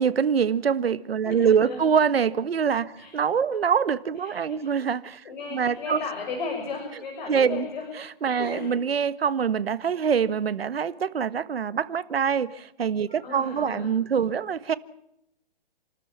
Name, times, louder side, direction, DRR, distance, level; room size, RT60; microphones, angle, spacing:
voice 1, 0.0-5.2 5.5-6.0 7.3-7.6 8.0-14.7, right 7 dB, 80° right, 1.5 m, -24 dB
voice 2, 1.2-1.9 3.0-3.1 4.2-4.7 5.3-7.9 8.4-8.8 13.1-13.9, left 4 dB, 55° left, 6.9 m, -35 dB
29.5 x 13.5 x 8.7 m
hypercardioid pair, 165°, 29 cm